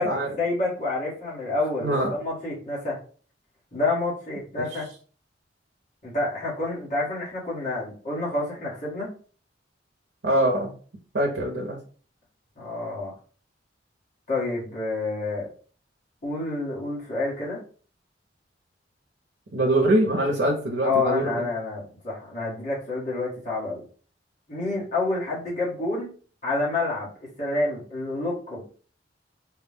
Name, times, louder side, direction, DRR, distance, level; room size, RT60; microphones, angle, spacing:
voice 1, 0.4-3.0 3.7-4.9 6.0-9.1 12.6-13.1 14.3-15.5 16.2-17.6 20.8-23.8 24.5-26.1 26.4-27.1 27.4-28.7, left 2 dB, 45° left, -6 dB, 1.7 m, -28 dB
voice 2, 1.8-2.2 4.6-4.7 10.2-10.7 11.1-11.8 19.5-21.2, right 1 dB, 75° right, -1 dB, 0.8 m, -23 dB
4.6 x 2.3 x 3.5 m, 0.42 s
head